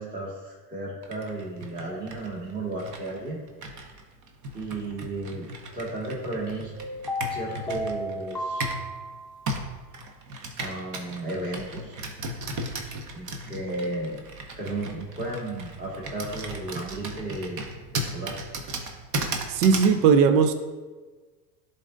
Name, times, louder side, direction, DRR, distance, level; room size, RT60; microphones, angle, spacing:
voice 1, 0.0-3.4 4.5-5.5 5.7-6.7 7.3-8.7 10.6-11.9 13.1-14.2 14.6-17.6 17.9-18.4, right 2 dB, 15° right, -5 dB, 1.7 m, -34 dB
Computer keyboard, 1.0-8.9 9.5-20.0, right 2 dB, 40° right, 1.0 m, -36 dB
sound 1, 6.8-9.5 13.7-14.1, equal, ahead, 0.7 m, -33 dB
voice 2, 19.3-20.5, right 6 dB, 70° right, 9 dB, 0.7 m, -19 dB
11.5 x 3.9 x 2.5 m, 1.3 s
hypercardioid pair, 110°, 49 cm